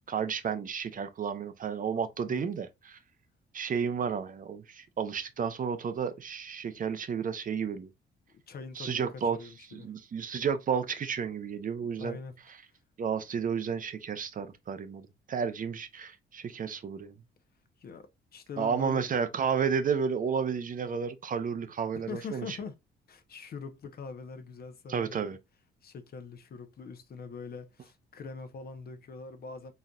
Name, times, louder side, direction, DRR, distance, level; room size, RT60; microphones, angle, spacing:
voice 1, 0.1-3.0 3.5-7.9 8.8-9.4 9.7-12.2 13.0-17.1 18.6-22.6 24.9-25.4, right 6 dB, 45° right, 0.6 m, -32 dB
voice 2, 8.5-9.9 11.8-12.4 17.8-19.1 21.9-22.8 23.1-25.4 25.8-29.7, left 5 dB, 50° left, 0.8 m, -43 dB
4.2 x 3.8 x 2.3 m
cardioid pair, 90°, 20 cm